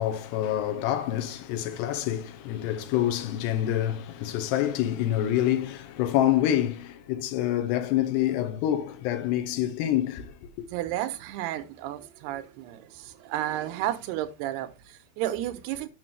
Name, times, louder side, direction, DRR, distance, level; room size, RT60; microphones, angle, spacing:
voice 1, 0.0-10.5, left 12 dB, 80° left, 3.0 m, -27 dB
voice 2, 10.7-15.9, right 13 dB, 85° right, 2.8 m, -32 dB
9.8 x 6.1 x 3.3 m
omnidirectional pair, 4.8 m